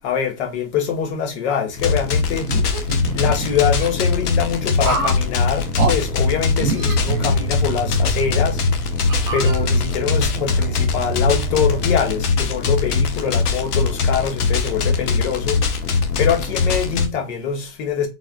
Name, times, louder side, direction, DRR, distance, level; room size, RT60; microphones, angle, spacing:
voice 1, 0.0-2.5 3.1-8.6 9.3-15.6 16.2-18.1, left 7 dB, 50° left, 0.9 m, -24 dB
sound 1, 1.8-17.1, left 4 dB, 80° left, 0.7 m, -21 dB
sound 2, 2.4-3.9 4.8-5.2 5.8-5.9 6.6-7.8 8.3-8.4 9.1-10.0, right 3 dB, 20° right, 0.3 m, -26 dB
sound 3, 5.4-11.9, right 7 dB, 80° right, 0.6 m, -30 dB
3.2 x 2.3 x 2.3 m
hypercardioid pair, 115°, 45 cm